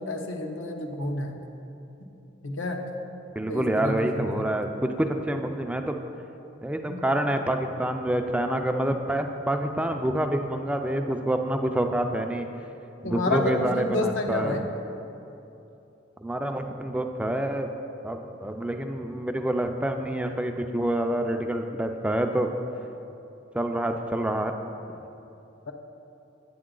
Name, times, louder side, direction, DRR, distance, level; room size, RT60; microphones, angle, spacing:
voice 1, 0.0-1.4 2.4-2.8 3.5-4.4 6.9-7.0 13.0-14.6, left 2 dB, 85° left, 3 dB, 0.8 m, -29 dB
voice 2, 3.4-4.7 5.0-5.9 6.6-12.5 13.0-14.6 16.2-17.7 18.0-22.5 23.5-24.5, right 1 dB, 5° right, 5 dB, 0.3 m, -27 dB
9.4 x 7.9 x 3.8 m, 2.9 s
head